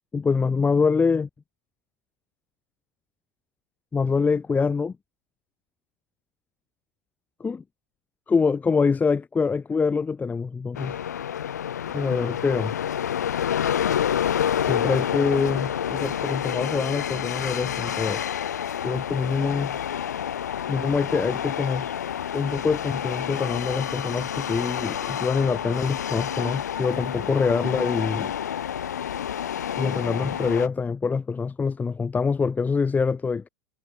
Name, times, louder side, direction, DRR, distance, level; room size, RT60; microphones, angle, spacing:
voice 1, 0.1-1.3 3.9-4.9 7.4-7.6 8.3-11.0 11.9-12.7 14.6-18.2 18.8-19.8 20.7-22.0 22.3-28.3 29.8-33.5, left 5 dB, 20° left, 1.2 m, -25 dB
sound 1, 10.8-30.7, left 9 dB, 80° left, 1.0 m, -29 dB
figure-of-eight pair, 85°, 9 cm